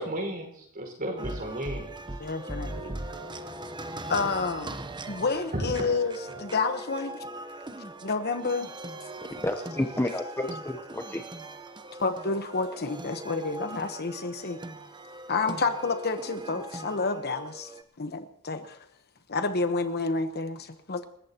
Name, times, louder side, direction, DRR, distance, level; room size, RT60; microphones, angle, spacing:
voice 1, 0.0-1.9 5.5-5.9, right 1 dB, 45° right, 1 dB, 5.3 m, -33 dB
sound 1, 1.2-17.8, right 1 dB, 20° right, 0.9 m, -40 dB
voice 2, 2.2-2.9 4.1-4.8 5.1-7.3 8.0-8.7 12.0-14.6 15.3-17.7 18.0-18.8 19.3-21.1, left 4 dB, 50° left, 8 dB, 1.1 m, -29 dB
voice 3, 9.2-11.2, left 1 dB, 10° left, 5 dB, 0.9 m, -31 dB
28.5 x 14.5 x 3.0 m, 0.72 s
head